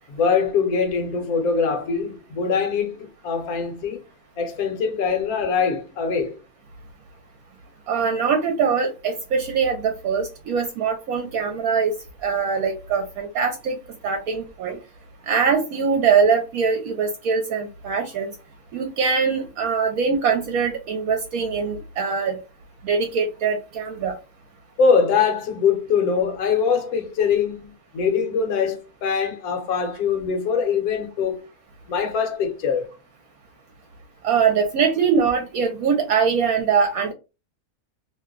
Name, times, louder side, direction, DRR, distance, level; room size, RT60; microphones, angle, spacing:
voice 1, 0.1-4.0 4.4-6.4 24.8-31.5 31.9-32.9, left 6 dB, 70° left, 1.2 m, -23 dB
voice 2, 7.9-11.9 12.2-13.8 14.0-14.8 15.3-18.3 18.7-22.4 22.8-24.1 34.2-37.1, right 6 dB, 70° right, 1.0 m, -22 dB
2.9 x 2.1 x 3.6 m
omnidirectional pair, 1.6 m